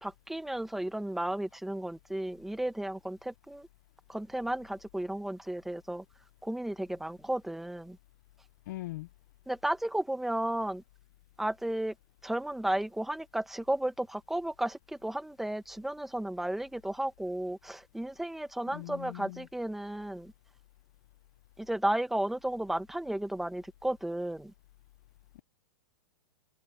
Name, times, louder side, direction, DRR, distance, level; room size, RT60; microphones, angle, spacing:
voice 1, 0.0-3.7 4.1-6.0 6.4-8.0 9.5-10.8 11.4-11.9 12.2-20.3 21.6-24.5, right 1 dB, ahead, 1.0 m, -33 dB
voice 2, 8.7-9.1 18.7-19.5, left 18 dB, 45° left, 0.5 m, -40 dB
supercardioid pair, 165°, 13 cm